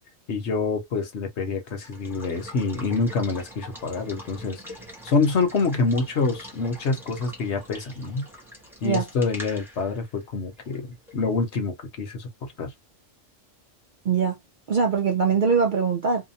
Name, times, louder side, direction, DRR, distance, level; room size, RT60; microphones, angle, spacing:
voice 1, 0.3-4.6 5.0-8.3 8.8-12.3 12.6-12.7, left 4 dB, 65° left, 1.1 m, -26 dB
Water / Water tap faucet / Liquid, 1.7-11.3, equal, ahead, 0.8 m, -44 dB
voice 2, 14.0-14.4 14.7-16.3, right 5 dB, 55° right, 0.5 m, -22 dB
2.8 x 2.2 x 2.6 m
omnidirectional pair, 1.3 m